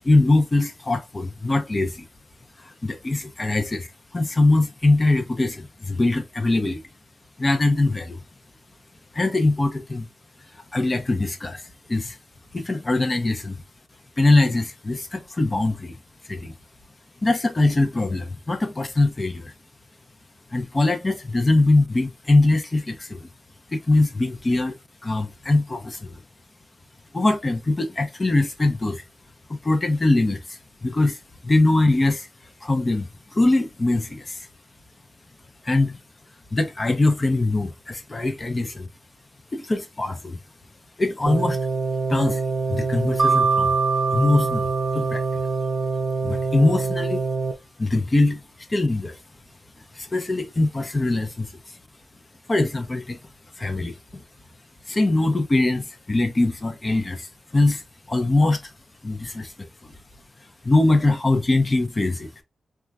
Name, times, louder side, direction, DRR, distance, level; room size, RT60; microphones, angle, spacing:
voice 1, 0.0-2.1 2.6-3.9 4.1-6.8 7.4-8.2 9.1-10.1 10.5-12.2 12.5-13.6 14.2-16.0 16.3-16.5 17.2-19.5 20.5-23.3 23.7-24.8 25.0-26.2 27.1-29.0 29.5-31.2 31.4-32.3 32.6-34.5 35.6-36.0 36.5-38.9 39.5-40.4 41.0-41.6 42.1-42.4 42.7-43.7 44.1-45.4 46.2-47.2 47.8-48.4 48.7-49.2 49.9-51.5 52.5-53.2 53.6-54.2 54.9-57.8 58.1-58.7 59.0-59.9 60.6-62.3, left 2 dB, 30° left, 0.6 m, -22 dB
sound 1, 41.3-47.5, right 4 dB, 65° right, 0.6 m, -26 dB
Mallet percussion, 43.2-46.0, right 4 dB, 20° right, 0.6 m, -25 dB
3.0 x 2.3 x 2.4 m
cardioid pair, 60°, 0 cm